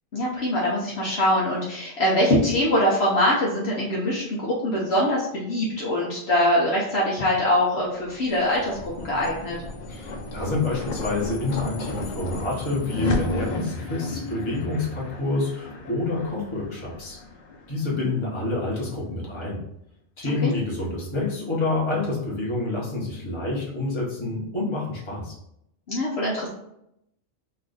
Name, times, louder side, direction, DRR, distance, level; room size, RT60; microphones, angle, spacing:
voice 1, 0.1-9.6 18.0-18.1 20.4-20.5 25.9-26.5, left 1 dB, 60° left, -5 dB, 0.9 m, -23 dB
sound 1, 8.0-18.6, left 2 dB, 85° left, 0.4 m, -33 dB
voice 2, 9.9-17.2 17.7-19.6 20.2-25.4, left 2 dB, 25° left, -5 dB, 1.0 m, -28 dB
3.2 x 2.4 x 3.8 m, 0.80 s
omnidirectional pair, 1.4 m